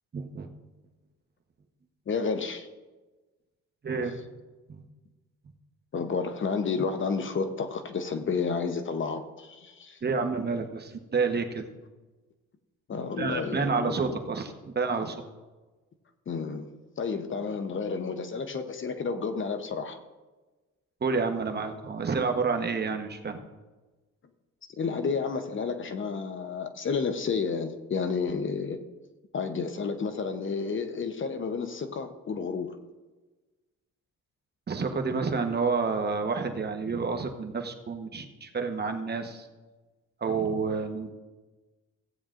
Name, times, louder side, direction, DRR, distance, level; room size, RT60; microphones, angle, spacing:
voice 1, 0.1-0.5 3.8-4.2 4.7-4.8 10.0-11.6 13.2-15.2 21.0-23.4 34.7-39.5 40.2-41.1, right 4 dB, 35° right, 5 dB, 1.0 m, -29 dB
voice 2, 2.1-2.7 5.9-10.0 12.9-14.2 16.3-16.7 17.0-20.0 24.8-28.8 29.3-32.8, left 5 dB, 40° left, 8 dB, 0.8 m, -31 dB
16.0 x 8.8 x 2.5 m, 1.2 s
cardioid pair, 90°, 30 cm